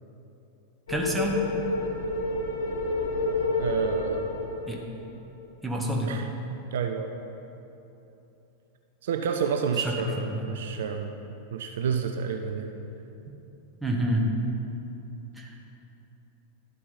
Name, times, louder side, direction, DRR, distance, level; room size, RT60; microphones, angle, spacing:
sound 1, 0.9-5.3, left 2 dB, 65° left, 1.2 m, -29 dB
voice 1, 0.9-1.4 4.7-4.8 5.6-6.1 9.8-9.9 10.3-10.5 13.8-14.3 15.4-15.6, equal, 5° right, -1 dB, 1.3 m, -28 dB
voice 2, 3.6-4.2 6.1-6.3 6.7-7.1 9.0-11.1 11.5-12.7, right 6 dB, 60° right, 6 dB, 0.5 m, -29 dB
11.5 x 7.5 x 4.1 m, 3.0 s
figure-of-eight pair, 90°, 0 cm